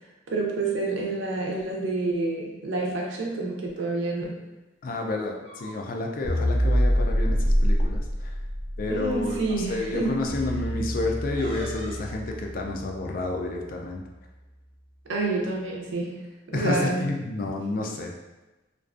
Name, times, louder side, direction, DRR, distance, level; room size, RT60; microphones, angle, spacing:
voice 1, 0.3-4.4 8.9-10.2 15.1-16.2 16.5-17.1, right 2 dB, 75° right, -1 dB, 0.5 m, -28 dB
sound 1, 3.6-3.9 5.1-6.0 6.3-6.5 6.9-7.1 8.1-8.2 8.8-9.1 11.3-12.1, equal, 30° right, 0.6 m, -44 dB
voice 2, 4.8-8.3 8.8-14.0 16.5-18.1, left 2 dB, 45° left, 1 dB, 0.3 m, -30 dB
sound 2, 6.2-10.7, equal, 75° left, 0.8 m, -24 dB
sound 3, 10.3-14.6, equal, 10° left, 0.7 m, -36 dB
2.4 x 2.2 x 2.4 m, 1.1 s
head